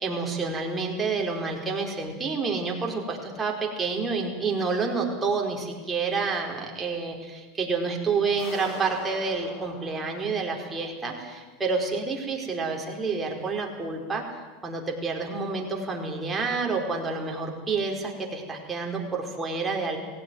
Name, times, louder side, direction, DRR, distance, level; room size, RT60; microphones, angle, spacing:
voice 1, 0.0-14.2 14.6-20.0, right 4 dB, 20° right, 0 dB, 4.7 m, -29 dB
sound 1, 8.4-11.2, left 2 dB, 55° left, 7.9 m, -44 dB
20.0 x 17.0 x 9.5 m, 1.3 s
supercardioid pair, 120°, 0 cm